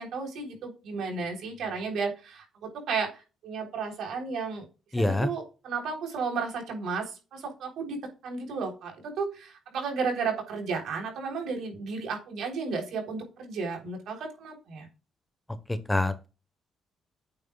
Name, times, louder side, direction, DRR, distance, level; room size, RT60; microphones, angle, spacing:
voice 1, 0.0-4.6 5.0-8.0 8.2-14.9, right 5 dB, 75° right, 2 dB, 3.7 m, -33 dB
voice 2, 4.9-5.3 15.9-16.3, left 2 dB, 10° left, 11 dB, 1.1 m, -25 dB
8.7 x 8.6 x 2.4 m, 0.31 s
cardioid pair, 90°, 0 cm